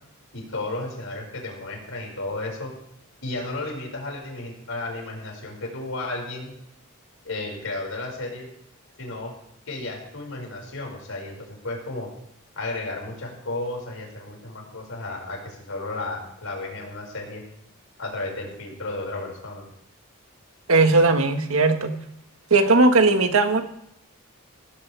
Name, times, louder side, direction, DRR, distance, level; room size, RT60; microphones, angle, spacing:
voice 1, 0.3-2.7 3.2-6.5 7.2-8.5 9.0-9.3 9.7-12.1 12.6-17.4 18.0-19.6, left 2 dB, 75° left, -1 dB, 5.6 m, -33 dB
voice 2, 20.7-21.9 22.5-23.6, right 3 dB, 90° right, 6 dB, 1.5 m, -18 dB
17.5 x 16.5 x 3.5 m, 0.78 s
head